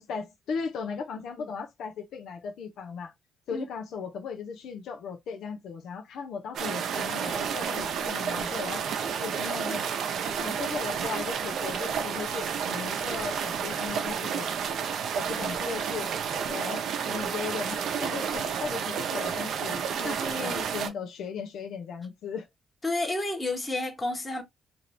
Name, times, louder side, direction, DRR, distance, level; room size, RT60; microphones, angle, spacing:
voice 1, 0.0-3.1 3.5-8.9 9.2-9.8 10.4-14.5 15.1-16.1 16.4-22.5, left 6 dB, 75° left, 0.6 m, -37 dB
sound 1, 6.5-20.9, right 7 dB, 70° right, 0.6 m, -31 dB
voice 2, 20.0-20.7 22.8-24.4, left 2 dB, 20° left, 1.2 m, -31 dB
2.8 x 2.6 x 3.1 m
cardioid pair, 90°, 0 cm